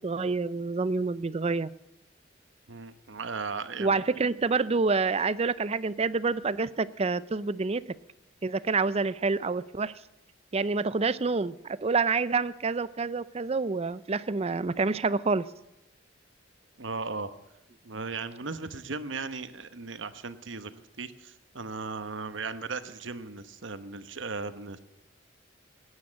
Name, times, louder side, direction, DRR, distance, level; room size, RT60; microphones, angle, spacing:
voice 1, 0.0-1.7 3.8-7.8 8.4-9.9 10.5-15.5, right 4 dB, 30° right, 16 dB, 0.5 m, -27 dB
voice 2, 2.7-4.0 16.8-17.3 17.8-20.7 21.0-24.8, right 4 dB, 65° right, 11 dB, 1.1 m, -37 dB
17.0 x 9.7 x 8.6 m, 0.93 s
head